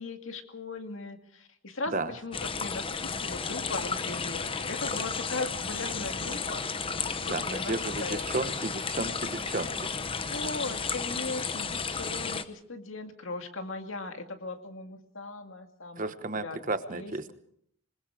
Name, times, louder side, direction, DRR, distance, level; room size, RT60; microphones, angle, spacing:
voice 1, 0.0-8.3 10.2-17.3, left 3 dB, 65° left, 6 dB, 2.2 m, -39 dB
sound 1, 2.3-12.4, left 5 dB, 25° left, 0.8 m, -33 dB
voice 2, 7.3-9.9 16.0-17.3, right 2 dB, 40° right, 11 dB, 1.1 m, -33 dB
26.5 x 20.0 x 4.9 m, 0.68 s
head